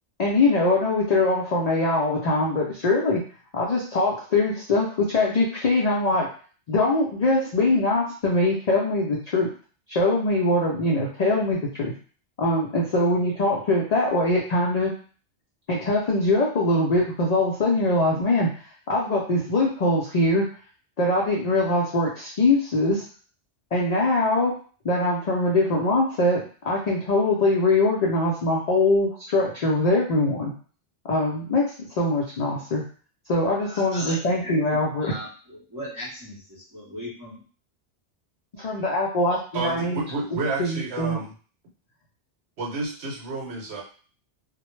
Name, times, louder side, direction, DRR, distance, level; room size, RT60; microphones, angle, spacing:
voice 1, 0.2-3.2 3.5-6.3 6.7-9.5 9.9-11.9 12.4-14.9 15.7-18.5 18.9-20.4 21.0-23.0 23.7-24.5 24.8-30.5 31.1-31.6 32.0-32.8 33.3-35.2 38.5-40.0 40.6-41.2, left 2 dB, 60° left, -3 dB, 0.4 m, -22 dB
voice 2, 33.6-37.4, left 1 dB, 20° right, -8 dB, 0.6 m, -38 dB
voice 3, 39.5-41.3 42.6-43.8, right 3 dB, 70° right, -2 dB, 0.9 m, -30 dB
2.1 x 2.0 x 3.0 m, 0.41 s
omnidirectional pair, 1.2 m